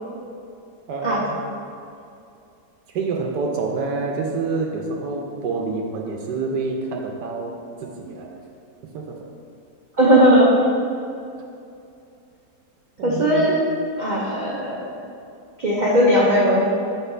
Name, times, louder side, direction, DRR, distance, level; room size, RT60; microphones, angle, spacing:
voice 1, 0.9-1.4 2.9-8.3 8.9-9.2 13.0-13.5, right 4 dB, 75° right, 1 dB, 1.3 m, -27 dB
voice 2, 10.0-10.5 13.0-13.5 14.0-15.0 15.6-16.6, equal, 50° right, -6 dB, 0.5 m, -17 dB
5.7 x 4.0 x 5.6 m, 2.6 s
omnidirectional pair, 1.8 m